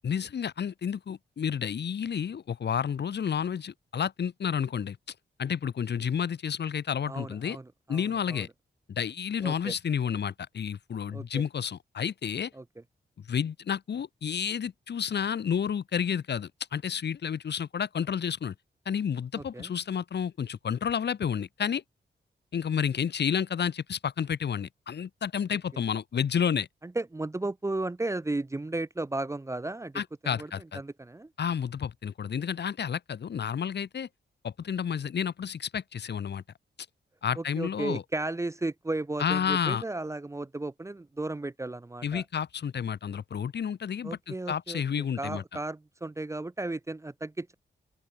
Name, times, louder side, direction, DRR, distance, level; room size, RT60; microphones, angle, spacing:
voice 1, 0.0-5.0 5.4-7.6 7.9-8.5 8.9-12.5 13.2-18.5 18.9-21.8 22.5-26.7 29.9-30.8 31.4-34.1 34.4-36.4 37.2-38.0 39.2-39.8 42.0-45.4, left 7 dB, 65° left, 2.2 m, -30 dB
voice 2, 7.1-7.6 7.9-8.4 9.4-9.7 11.1-11.4 12.6-12.7 19.5-19.7 26.8-29.9 30.3-31.3 37.4-42.2 44.0-47.5, right 2 dB, 15° right, 0.9 m, -34 dB
open air
wide cardioid pair, 165°, 19 cm